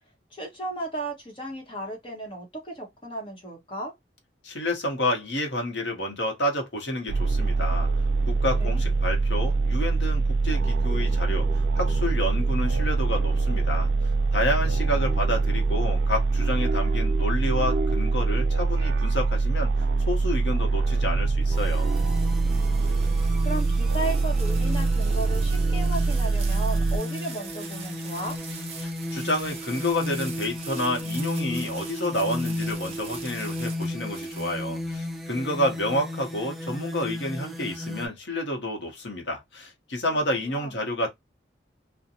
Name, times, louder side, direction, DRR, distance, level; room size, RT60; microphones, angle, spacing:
voice 1, 0.3-3.9 8.5-8.9 22.4-28.4 40.1-40.8, right 1 dB, 25° left, 0.9 m, -35 dB
voice 2, 4.4-7.9 8.3-11.5 11.7-13.9 14.3-19.7 20.1-21.9 28.8-41.1, left 1 dB, 75° left, 0.9 m, -29 dB
sound 1, 7.1-27.0, right 3 dB, 70° right, 0.3 m, -24 dB
sound 2, 21.2-35.0, right 5 dB, 35° right, 0.7 m, -44 dB
sound 3, 21.5-38.1, left 1 dB, ahead, 0.4 m, -34 dB
2.5 x 2.1 x 2.8 m
head